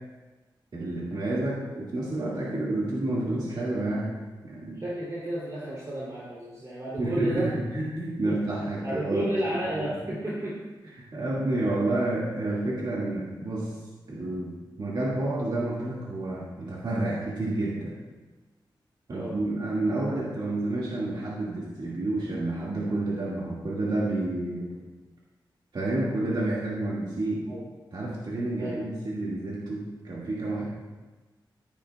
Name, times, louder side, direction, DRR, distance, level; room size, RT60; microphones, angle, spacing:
voice 1, 0.7-4.1 4.4-4.8 7.0-9.9 11.0-13.8 14.1-17.9 19.1-24.7 25.7-27.5 27.9-30.6, right 2 dB, 65° right, -6 dB, 2.2 m, -30 dB
voice 2, 4.8-7.5 8.2-8.4 8.8-10.6 19.1-19.3 27.5-27.6 28.6-29.0, right 1 dB, 40° right, -7 dB, 3.4 m, -32 dB
13.5 x 11.0 x 2.4 m, 1.2 s
wide cardioid pair, 80°, 8 cm